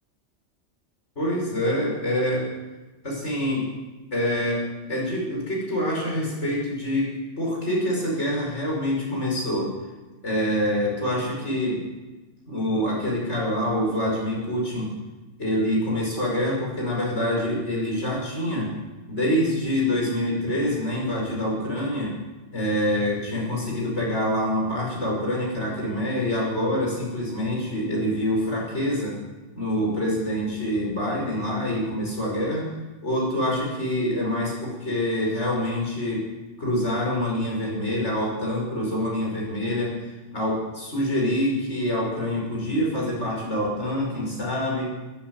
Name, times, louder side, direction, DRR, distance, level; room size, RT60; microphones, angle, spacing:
voice 1, 1.2-2.5 3.0-3.7 4.1-9.7 10.2-11.8 12.5-14.9 15.4-18.7 19.1-22.1 22.5-29.2 29.5-32.7 33.0-36.3 36.6-40.0 40.3-44.9, left 1 dB, 75° left, -3 dB, 6.0 m, -26 dB
14.5 x 10.0 x 9.8 m, 1.2 s
omnidirectional pair, 1.2 m